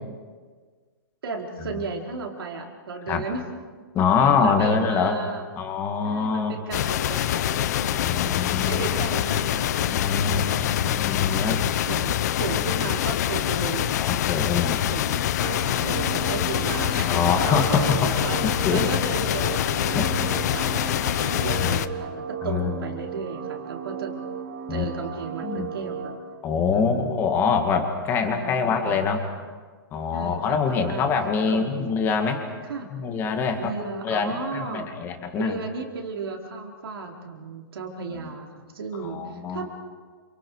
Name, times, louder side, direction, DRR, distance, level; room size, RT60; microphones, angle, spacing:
voice 1, 1.2-3.4 4.4-5.5 6.0-8.4 8.6-10.0 10.3-11.0 11.3-14.0 14.5-14.6 14.9-15.3 15.8-18.4 18.7-24.1 24.7-26.1 26.7-27.3 28.2-29.1 30.1-31.1 31.5-31.9 32.6-32.9 33.6-34.9 35.3-38.5 38.7-39.7, right 4 dB, 85° right, 0 dB, 4.9 m, -34 dB
voice 2, 3.9-5.2 5.6-6.5 8.0-9.0 9.9-11.6 13.9-14.8 15.3-15.6 17.1-18.1 18.4-18.9 19.9-20.1 21.5-21.8 22.4-22.7 24.7-24.9 25.4-25.7 26.4-29.2 29.9-32.4 32.9-33.7 34.0-35.6 38.1-38.3 39.0-39.7, left 5 dB, 20° left, 5 dB, 2.3 m, -25 dB
sound 1, 6.7-21.9, left 12 dB, 45° left, 0.8 m, -25 dB
sound 2, 15.4-26.2, right 7 dB, 45° right, 4.7 m, -35 dB
29.5 x 28.0 x 5.0 m, 1.5 s
hypercardioid pair, 165°, 12 cm